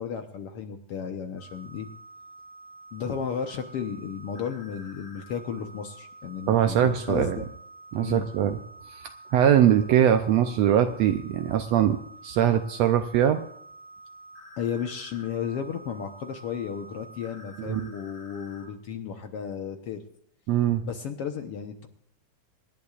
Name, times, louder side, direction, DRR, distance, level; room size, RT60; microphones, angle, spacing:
voice 1, 0.0-1.9 2.9-7.5 8.0-8.2 14.6-20.0 20.8-21.9, left 7 dB, 65° left, 6 dB, 1.6 m, -34 dB
sound 1, 1.4-18.7, right 2 dB, 30° left, 4.0 m, -48 dB
voice 2, 6.5-7.4 7.9-8.6 8.9-12.0 12.2-13.5 17.6-17.9 20.5-20.8, right 10 dB, 75° right, 9 dB, 1.6 m, -22 dB
26.0 x 11.0 x 2.4 m, 0.71 s
omnidirectional pair, 3.5 m